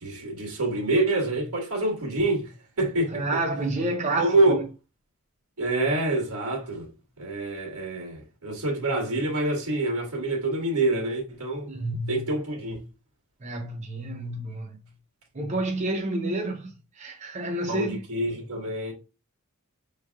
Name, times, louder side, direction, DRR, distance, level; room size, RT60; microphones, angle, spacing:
voice 1, 0.0-2.5 2.8-3.2 4.2-4.6 5.6-6.9 7.2-11.7 12.1-12.8 17.7-18.9, right 2 dB, 80° right, 1.5 m, -26 dB
voice 2, 3.1-4.7 11.7-12.3 13.4-14.8 15.3-18.0, right 2 dB, 30° right, 0.6 m, -29 dB
5.5 x 3.2 x 2.3 m
head